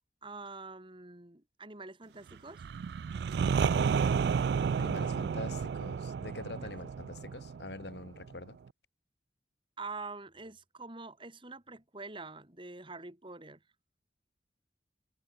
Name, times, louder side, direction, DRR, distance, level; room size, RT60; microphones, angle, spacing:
voice 1, 0.2-2.6 6.6-6.7 9.8-13.6, right 3 dB, 30° right, 2.9 m, -45 dB
sound 1, 2.6-8.3, right 6 dB, 65° right, 0.3 m, -31 dB
voice 2, 4.8-8.6, left 2 dB, 70° left, 2.6 m, -44 dB
head